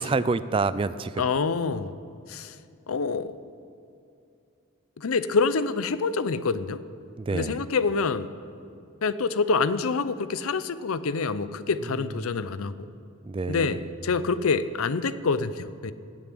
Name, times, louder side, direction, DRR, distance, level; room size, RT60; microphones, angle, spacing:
voice 1, 0.0-1.3 7.2-7.6 13.2-13.9, right 3 dB, 25° right, 15 dB, 0.3 m, -27 dB
voice 2, 1.2-2.0 2.3-2.6 2.9-3.3 5.0-6.8 7.3-8.3 9.0-12.9 13.5-15.9, left 4 dB, 75° left, 14 dB, 0.6 m, -26 dB
15.5 x 7.1 x 9.2 m, 2.6 s
head